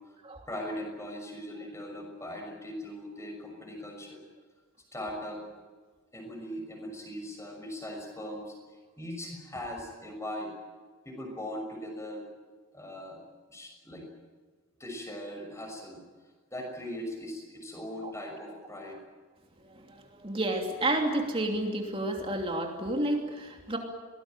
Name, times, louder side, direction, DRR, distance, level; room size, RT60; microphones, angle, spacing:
voice 1, 0.5-4.2 4.9-5.6 6.1-8.5 9.0-10.5 11.0-12.3 12.7-13.2 13.5-14.1 14.8-16.0 16.5-19.0, left 1 dB, 15° left, 3 dB, 6.2 m, -39 dB
voice 2, 19.7-23.8, right 1 dB, 25° right, 2 dB, 3.0 m, -31 dB
23.5 x 19.5 x 9.1 m, 1.4 s
head